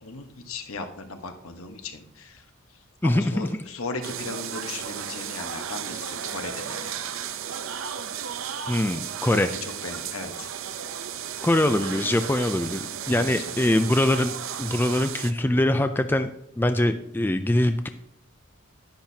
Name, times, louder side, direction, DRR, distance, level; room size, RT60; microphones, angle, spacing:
voice 1, 0.0-2.5 3.0-7.1 9.3-10.5 13.1-13.8, left 3 dB, 75° left, 6 dB, 1.1 m, -37 dB
voice 2, 3.0-3.5 8.7-9.5 11.4-16.3 16.6-17.9, left 1 dB, 10° left, 9 dB, 0.3 m, -23 dB
sound 1, 4.0-15.3, right 8 dB, 70° right, 0.6 m, -34 dB
10.5 x 10.5 x 2.8 m, 0.76 s
head